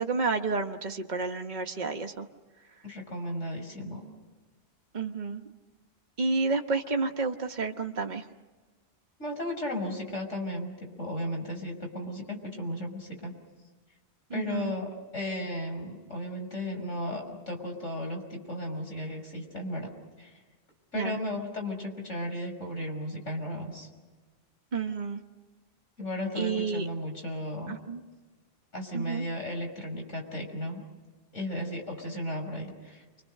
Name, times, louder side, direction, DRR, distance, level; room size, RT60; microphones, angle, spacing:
voice 1, 0.0-2.3 4.9-5.4 6.2-8.2 14.3-14.7 20.9-21.2 24.7-25.2 26.4-26.9 27.7-28.0 28.9-29.2, right 4 dB, 40° right, 4 dB, 1.3 m, -30 dB
voice 2, 2.8-4.1 9.2-13.3 14.3-19.9 20.2-20.4 20.9-23.9 26.0-27.8 28.7-30.8 31.3-33.2, left 1 dB, 90° left, 3 dB, 6.1 m, -35 dB
29.5 x 24.5 x 6.6 m, 1.3 s
omnidirectional pair, 1.2 m